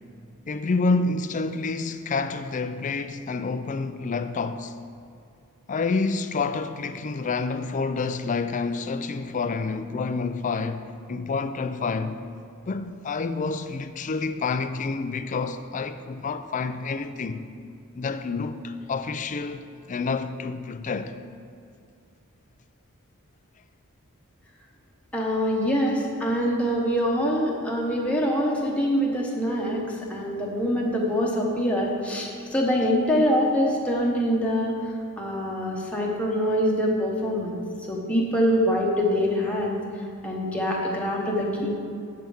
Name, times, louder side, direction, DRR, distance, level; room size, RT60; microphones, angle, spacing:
voice 1, 0.5-4.8 5.7-12.2 12.7-17.5 18.0-21.1, left 4 dB, 35° left, 0.4 m, -28 dB
voice 2, 25.1-34.7 35.2-37.6 37.9-39.8 40.2-41.7, equal, 5° left, 1.0 m, -24 dB
7.5 x 5.6 x 7.0 m
head